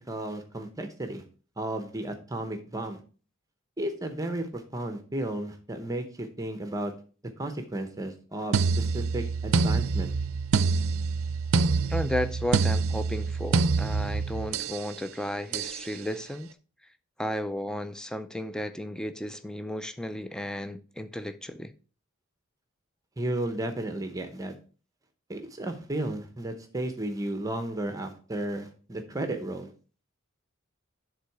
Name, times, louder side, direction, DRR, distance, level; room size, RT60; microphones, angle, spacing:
voice 1, 0.1-1.2 1.6-3.0 3.8-6.9 7.4-10.1 23.2-24.5 25.3-29.7, right 1 dB, 15° right, 0.8 m, -33 dB
sound 1, 8.5-14.8 15.5-15.8, right 4 dB, 90° right, 0.5 m, -26 dB
voice 2, 11.9-16.5 17.2-21.7, left 1 dB, 5° left, 0.4 m, -34 dB
10.0 x 3.9 x 4.6 m
head